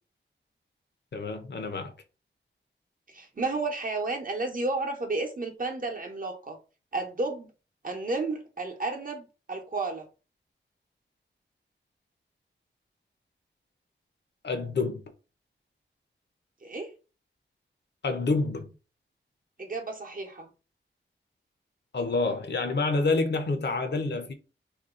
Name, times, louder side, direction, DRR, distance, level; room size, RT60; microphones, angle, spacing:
voice 1, 1.1-1.9 14.4-15.0 18.0-18.7 21.9-24.3, left 3 dB, 60° left, 0.7 m, -28 dB
voice 2, 3.1-6.6 6.9-7.5 7.8-10.1 16.6-16.9 19.6-20.5, right 3 dB, 45° right, 0.9 m, -32 dB
2.7 x 2.3 x 3.6 m
wide cardioid pair, 75°, 20 cm